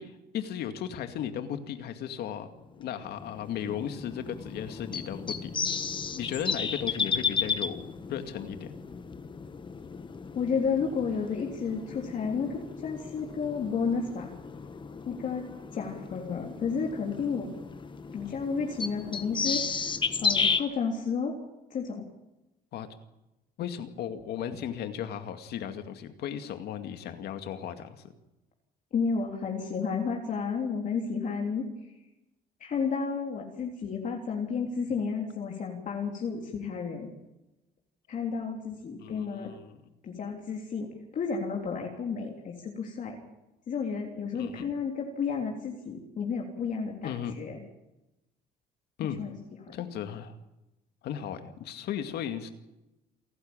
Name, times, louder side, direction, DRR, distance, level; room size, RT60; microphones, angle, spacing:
voice 1, 0.0-2.5 2.8-5.5 6.1-8.7 18.3-18.4 22.7-22.9 23.6-28.0 39.0-39.8 44.3-44.7 47.0-47.3 49.0-49.2 49.7-50.3 51.0-52.5, left 9 dB, 70° left, 8 dB, 2.3 m, -36 dB
sound 1, 2.8-20.6, left 5 dB, 30° left, 1.5 m, -34 dB
voice 2, 10.4-14.3 15.0-15.5 15.7-17.5 18.1-19.9 20.2-21.4 21.7-22.1 28.9-31.7 32.6-37.1 38.1-39.5 40.0-43.2 43.7-47.6 49.2-49.3, left 5 dB, 50° left, 0 dB, 3.5 m, -32 dB
28.5 x 12.0 x 9.0 m, 0.96 s
cardioid pair, 110°, 17 cm